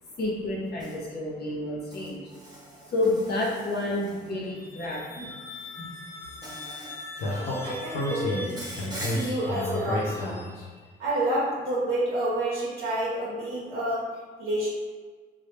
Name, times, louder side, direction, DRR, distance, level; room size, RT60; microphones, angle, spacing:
voice 1, 0.2-2.2 2.9-5.3 5.8-5.9, left 1 dB, 55° left, -5 dB, 0.7 m, -29 dB
Insect, 0.8-1.0 1.9-4.5 5.6-5.8 6.4-7.0 7.3-7.8 8.5-9.2, right 1 dB, 20° right, 0.9 m, -42 dB
sound 1, 4.4-11.0, left 2 dB, 15° left, 0.4 m, -43 dB
Speech, 7.2-10.6, left 1 dB, 90° left, 0.8 m, -30 dB
voice 2, 7.2-8.6 9.0-10.4 11.0-14.0 14.4-14.7, right 1 dB, 75° right, -7 dB, 0.7 m, -29 dB
3.1 x 2.2 x 3.3 m, 1.5 s
cardioid pair, 90°, 20 cm